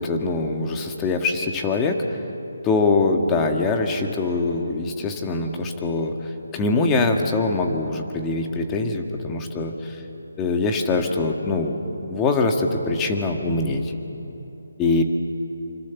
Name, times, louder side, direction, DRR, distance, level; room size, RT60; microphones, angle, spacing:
voice 1, 0.0-2.2 2.6-10.0 10.4-13.8 14.8-15.0, left 3 dB, 15° left, 3 dB, 1.8 m, -23 dB
26.0 x 25.0 x 7.2 m, 3.0 s
figure-of-eight pair, 160°, 0 cm